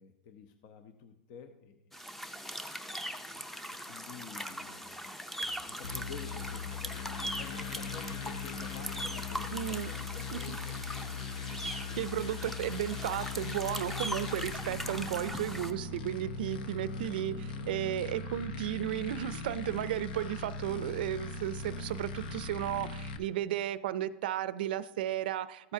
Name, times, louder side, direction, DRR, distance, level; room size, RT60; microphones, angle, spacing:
voice 1, 0.0-1.9 3.3-3.4 3.8-5.2 5.6-10.8, left 6 dB, 55° left, 7 dB, 0.7 m, -50 dB
sound 1, 1.9-15.7, equal, 5° left, 0.6 m, -41 dB
Drum kit, 5.4-13.8, left 2 dB, 35° left, 1.2 m, -60 dB
sound 2, 5.8-23.2, left 4 dB, 80° left, 1.0 m, -40 dB
voice 2, 9.5-9.9 10.3-10.6 11.5-25.7, right 12 dB, 75° right, 16 dB, 0.4 m, -34 dB
14.0 x 8.3 x 2.7 m, 0.89 s
supercardioid pair, 130°, 5 cm